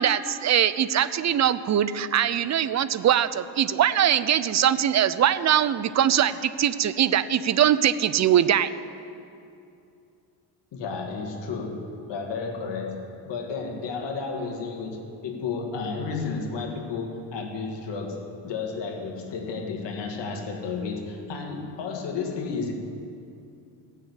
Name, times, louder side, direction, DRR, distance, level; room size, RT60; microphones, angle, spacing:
voice 1, 0.0-8.7, right 10 dB, 40° right, 15 dB, 0.5 m, -22 dB
voice 2, 10.7-22.7, left 4 dB, 75° left, 2 dB, 2.1 m, -32 dB
16.5 x 6.7 x 8.2 m, 2.6 s
cardioid pair, 120°, 43 cm